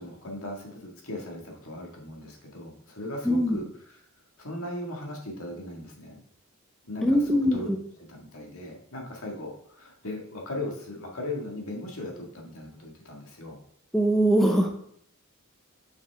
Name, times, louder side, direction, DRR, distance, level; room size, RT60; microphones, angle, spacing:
voice 1, 0.0-4.0 4.4-6.2 6.9-7.7 8.1-13.6, left 1 dB, 80° left, 0 dB, 1.8 m, -38 dB
voice 2, 3.2-3.6 7.0-7.8 13.9-14.8, equal, ahead, 2 dB, 0.7 m, -22 dB
6.5 x 5.7 x 3.5 m, 0.67 s
head